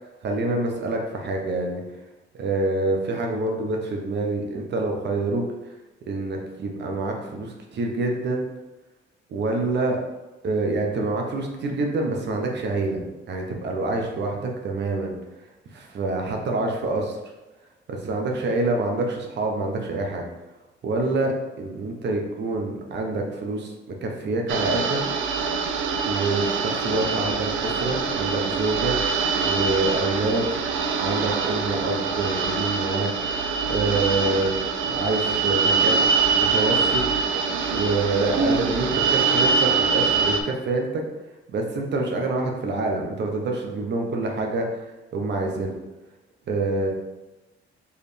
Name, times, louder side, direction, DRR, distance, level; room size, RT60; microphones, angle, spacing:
voice 1, 0.2-1.8 2.4-5.4 6.1-8.4 9.3-10.0 10.4-15.1 15.7-17.2 17.9-20.2 20.8-25.0 26.0-29.0 29.4-30.5 31.0-33.1 33.6-36.0 36.4-37.0 37.7-41.0 41.5-44.7 45.1-45.7 46.5-46.9, right 2 dB, 60° right, 1 dB, 1.0 m, -26 dB
sound 1, 24.5-40.4, right 5 dB, 75° right, 0.5 m, -24 dB
4.8 x 3.3 x 3.4 m, 1.1 s
cardioid pair, 90°, 20 cm